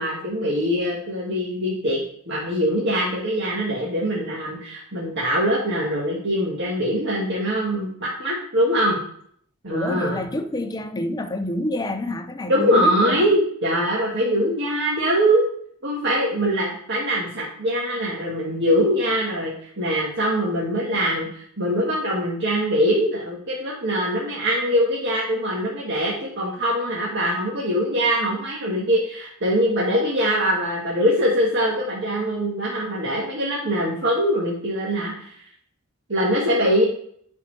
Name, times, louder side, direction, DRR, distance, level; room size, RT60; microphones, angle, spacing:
voice 1, 0.0-9.0 9.6-10.2 12.5-15.4 15.8-35.3 36.1-36.8, equal, 55° right, 1.5 m, -23 dB
voice 2, 9.7-13.3, left 1 dB, 20° left, 0.5 m, -28 dB
10.0 x 4.2 x 3.2 m
head